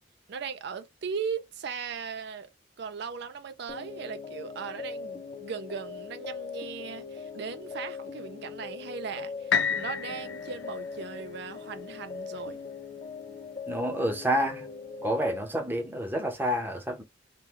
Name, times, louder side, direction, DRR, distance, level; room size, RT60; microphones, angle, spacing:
voice 1, 0.3-2.5 2.8-12.6, right 6 dB, 60° right, 0.4 m, -38 dB
sound 1, 3.7-15.4, left 5 dB, 30° left, 0.8 m, -40 dB
sound 2, 9.5-13.4 14.0-14.1, left 7 dB, 70° left, 0.4 m, -33 dB
voice 2, 13.7-14.7 15.0-17.0, equal, 10° right, 0.7 m, -29 dB
2.9 x 2.2 x 3.4 m
head